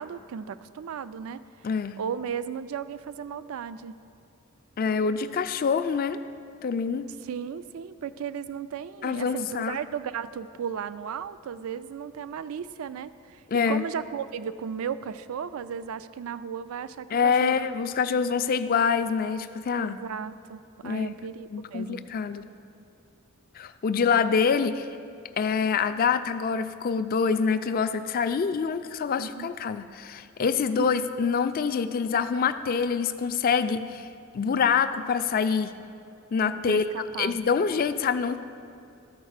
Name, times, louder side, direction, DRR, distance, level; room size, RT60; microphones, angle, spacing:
voice 1, 0.0-1.4 2.0-4.0 7.2-17.7 19.7-22.1 29.2-29.5 30.8-31.0 36.7-37.4, right 7 dB, 70° right, 14 dB, 0.3 m, -35 dB
voice 2, 1.6-2.0 4.8-6.2 6.6-7.1 9.0-9.8 13.5-13.8 17.1-20.0 20.8-21.1 21.5-22.5 23.6-24.9 25.4-34.1 34.3-35.7 36.3-36.9 37.2-38.4, left 6 dB, 40° left, 11 dB, 0.3 m, -25 dB
12.5 x 4.6 x 6.5 m, 2.5 s
head